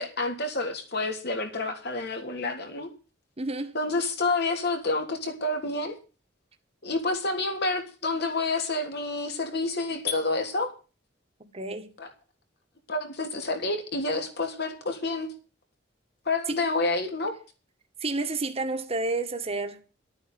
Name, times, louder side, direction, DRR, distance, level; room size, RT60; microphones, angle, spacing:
voice 1, 0.0-2.9 3.7-5.9 6.8-10.7 12.0-12.1 12.9-15.3 16.2-17.3, left 2 dB, 60° left, 3.2 m, -29 dB
voice 2, 3.4-3.8 11.5-11.9 16.5-16.6 18.0-19.8, right 3 dB, 35° right, 1.7 m, -30 dB
12.5 x 9.1 x 7.7 m
head